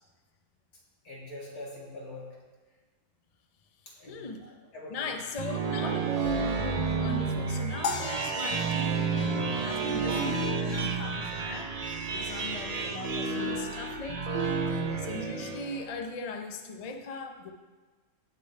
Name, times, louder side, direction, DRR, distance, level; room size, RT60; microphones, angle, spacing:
voice 1, 1.0-2.4 3.9-4.2 4.7-5.1, left 2 dB, 85° left, -4 dB, 3.0 m, -43 dB
voice 2, 4.1-4.4 4.9-11.7 12.1-17.5, left 3 dB, 35° left, 5 dB, 0.6 m, -40 dB
sound 1, 5.1-16.0, right 4 dB, 45° right, 0.5 m, -30 dB
sound 2, 7.8-10.2, left 5 dB, 60° left, 1.0 m, -37 dB
17.5 x 6.9 x 3.3 m, 1.3 s
omnidirectional pair, 1.6 m